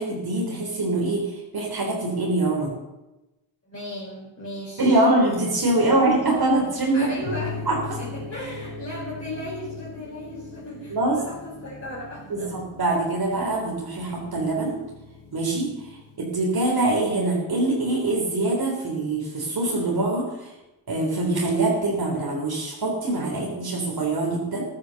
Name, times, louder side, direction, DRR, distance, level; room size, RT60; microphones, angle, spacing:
voice 1, 0.0-2.7 4.8-7.2 7.7-7.8 10.9-11.2 12.3-14.8 15.3-15.7 16.2-20.5 20.9-24.6, right 2 dB, 50° right, -2 dB, 3.7 m, -24 dB
voice 2, 3.7-5.0 6.9-7.7 8.0-12.5, left 1 dB, 25° left, -5 dB, 4.3 m, -36 dB
sound 1, 5.3-16.2, left 3 dB, 80° left, 3.1 m, -40 dB
15.0 x 11.5 x 6.5 m, 1.0 s
wide cardioid pair, 120°, 48 cm